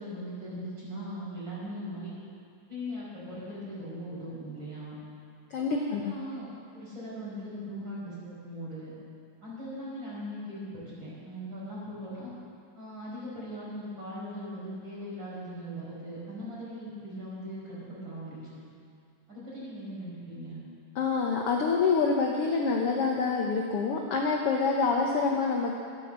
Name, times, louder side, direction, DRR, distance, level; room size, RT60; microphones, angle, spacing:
voice 1, 0.0-2.1 2.7-5.0 5.5-8.9 9.4-12.3 12.7-18.6 19.3-20.6, equal, 35° right, -7 dB, 5.4 m, -39 dB
voice 2, 5.5-6.0 21.0-25.7, left 4 dB, 70° left, 0 dB, 1.4 m, -26 dB
14.0 x 10.0 x 7.4 m, 2.4 s
omnidirectional pair, 4.0 m